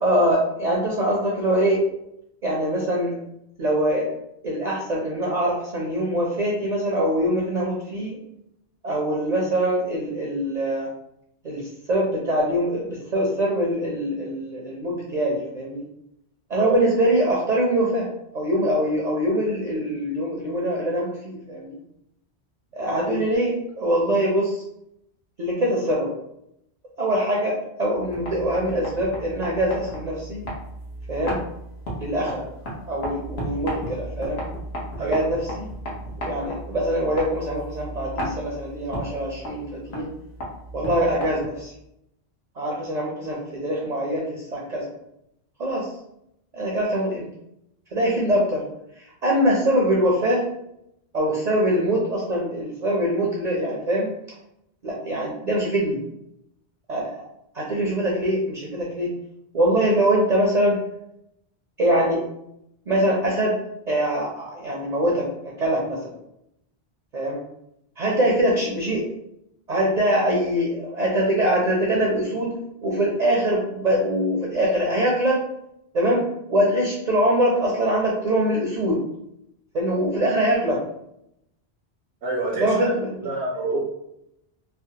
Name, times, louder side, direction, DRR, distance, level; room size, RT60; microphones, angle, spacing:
voice 1, 0.0-1.8 2.4-3.2 3.6-4.1 4.4-8.2 8.8-10.9 11.4-15.8 16.5-18.1 18.3-21.8 22.7-24.6 25.4-26.1 27.0-30.4 31.1-31.4 32.0-32.4 32.8-34.4 35.0-35.7 36.2-39.6 39.9-40.1 40.7-41.7 42.6-44.9 45.6-45.9 46.5-47.2 47.9-48.6 49.0-50.4 51.1-54.1 54.8-56.0 56.9-57.2 57.5-59.1 59.5-60.8 61.8-62.2 62.9-63.6 63.9-66.1 67.1-67.4 68.0-69.0 69.7-72.5 72.8-75.4 75.9-79.0 79.7-80.8 82.6-83.2, right 1 dB, 50° right, -3 dB, 0.6 m, -23 dB
sound 1, 28.0-41.7, equal, 75° left, 1.1 m, -34 dB
voice 2, 35.0-35.3 35.9-36.0 82.2-82.9 83.2-83.8, right 2 dB, 80° right, -4 dB, 0.9 m, -27 dB
3.2 x 2.0 x 2.7 m, 0.79 s
omnidirectional pair, 1.1 m